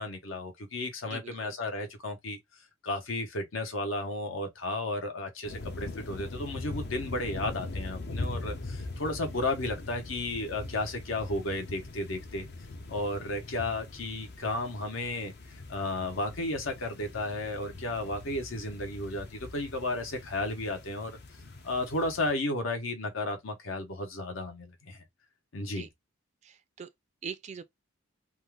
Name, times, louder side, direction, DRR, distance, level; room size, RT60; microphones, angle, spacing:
voice 1, 0.0-2.4 2.8-12.5 12.9-15.3 15.7-21.1 21.6-25.0 25.5-25.9, left 2 dB, 75° left, 1.0 m, -33 dB
voice 2, 1.1-1.5 25.7-25.9 26.4-26.9 27.2-27.6, right 6 dB, 35° right, 0.3 m, -42 dB
sound 1, 5.4-22.3, left 2 dB, 55° left, 0.6 m, -41 dB
2.7 x 2.4 x 3.3 m
head